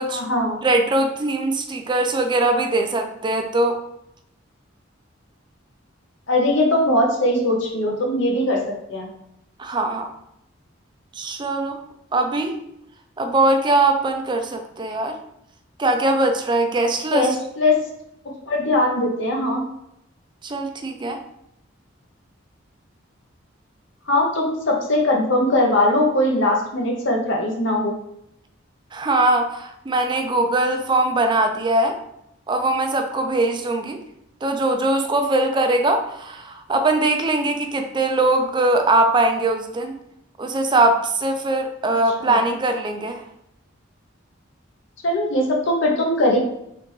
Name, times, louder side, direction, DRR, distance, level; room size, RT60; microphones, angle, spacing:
voice 1, 0.1-0.6 6.3-8.6 8.9-9.1 17.1-17.8 18.5-19.6 24.1-27.9 42.2-42.4 45.0-46.4, left 1 dB, 70° left, 0 dB, 0.9 m, -20 dB
voice 2, 0.6-3.8 9.6-10.1 11.2-11.8 12.1-12.6 13.2-15.2 15.8-17.4 20.4-21.2 28.9-32.0 32.5-34.0 34.4-39.9 40.4-43.2, right 2 dB, 25° right, 5 dB, 0.4 m, -21 dB
4.0 x 3.3 x 3.0 m, 0.79 s
head